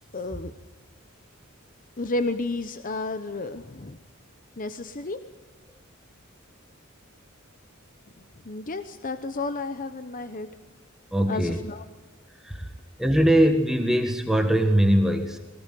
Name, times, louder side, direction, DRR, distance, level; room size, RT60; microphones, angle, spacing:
voice 1, 0.1-0.5 2.0-4.0 4.6-5.2 8.4-10.5 11.3-11.8, left 2 dB, 40° left, 10 dB, 1.0 m, -31 dB
voice 2, 11.1-11.6 12.3-12.7 13.0-15.4, equal, ahead, 5 dB, 1.5 m, -21 dB
22.5 x 19.0 x 9.3 m, 1.3 s
head